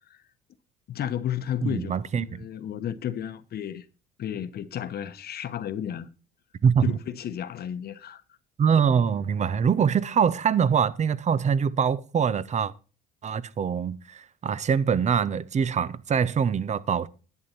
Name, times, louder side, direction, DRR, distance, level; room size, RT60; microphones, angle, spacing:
voice 1, 0.9-1.9 2.2-3.9 4.2-6.1 6.8-8.2, left 10 dB, 50° left, 1.0 m, -32 dB
voice 2, 1.6-2.5 6.6-7.0 8.6-12.7 13.2-17.1, right 7 dB, 35° right, 0.8 m, -24 dB
11.0 x 8.8 x 4.3 m
supercardioid pair, 85°, 21 cm